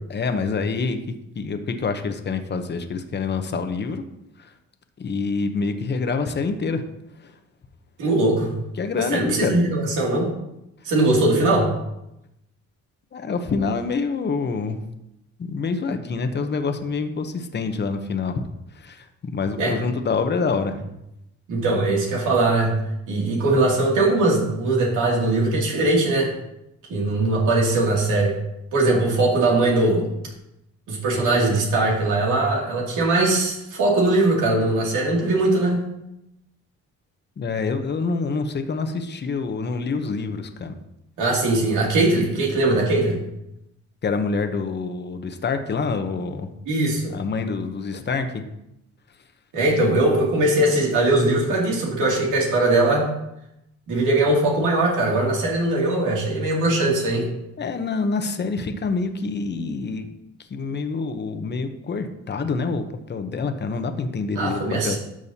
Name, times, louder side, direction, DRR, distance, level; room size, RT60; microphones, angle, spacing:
voice 1, 0.1-1.0 1.3-4.0 4.4-4.5 5.0-6.8 7.2-7.4 8.8-9.6 13.1-14.9 15.4-18.4 18.7-20.8 37.4-40.8 44.0-46.5 47.1-48.4 57.6-60.1 60.5-65.0, left 4 dB, 35° left, 7 dB, 0.9 m, -26 dB
voice 2, 8.0-8.6 9.1-10.3 10.8-11.7 19.6-19.8 21.5-22.8 23.1-26.3 26.9-28.4 28.7-30.0 30.9-35.8 41.2-43.2 46.7-47.1 49.5-53.1 53.9-57.3 64.4-65.0, right 2 dB, 85° right, -3 dB, 2.7 m, -20 dB
12.0 x 6.3 x 2.9 m, 0.85 s
cardioid pair, 90°, 30 cm